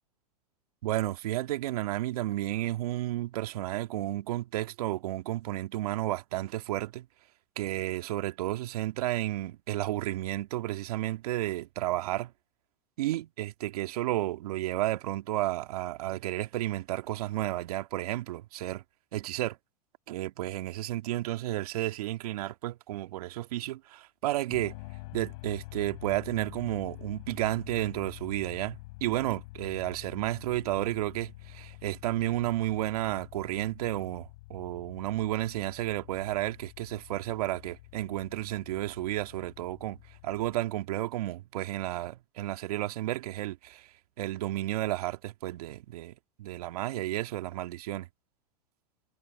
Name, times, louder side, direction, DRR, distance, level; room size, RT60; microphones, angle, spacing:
voice 1, 0.8-7.1 7.6-12.3 13.0-18.8 19.1-19.6 20.1-24.8 25.1-40.0 40.2-43.9 44.2-46.1 46.4-48.1, right 15 dB, 70° right, 2.0 m, -32 dB
sound 1, 24.5-40.6, left 22 dB, 60° left, 4.3 m, -47 dB
hypercardioid pair, 110°, 20 cm